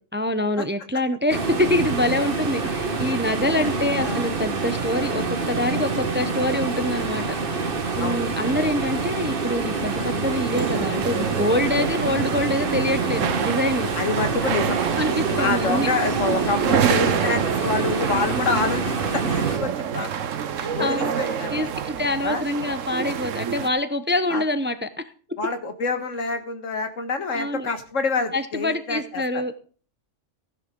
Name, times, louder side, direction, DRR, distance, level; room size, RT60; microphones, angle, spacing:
voice 1, 0.1-7.3 8.0-13.9 15.0-16.0 20.6-24.9 27.3-27.7 28.3-29.5, left 1 dB, 10° right, 11 dB, 0.6 m, -25 dB
sound 1, 1.3-19.6, right 3 dB, 45° right, 1.5 m, -27 dB
voice 2, 4.0-4.3 8.0-8.7 14.0-14.8 15.4-20.1 20.7-21.7 22.2-22.4 24.3-24.4 25.4-29.4, left 4 dB, 85° left, 7 dB, 2.0 m, -27 dB
sound 2, 10.5-23.7, right 8 dB, 90° right, 1.2 m, -27 dB
15.5 x 10.5 x 3.8 m, 0.40 s
omnidirectional pair, 1.3 m